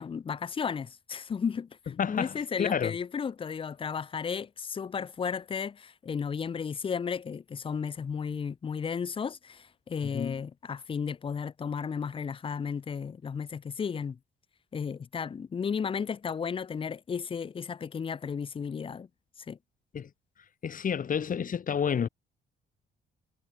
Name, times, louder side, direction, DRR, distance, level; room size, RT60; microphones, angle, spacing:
voice 1, 0.0-14.2 14.7-19.1 19.5-19.6, left 6 dB, 25° left, 0.4 m, -34 dB
voice 2, 2.0-2.9 10.1-10.4 19.9-20.1 20.6-22.1, left 7 dB, 40° left, 1.1 m, -30 dB
cardioid pair, 90°, 20 cm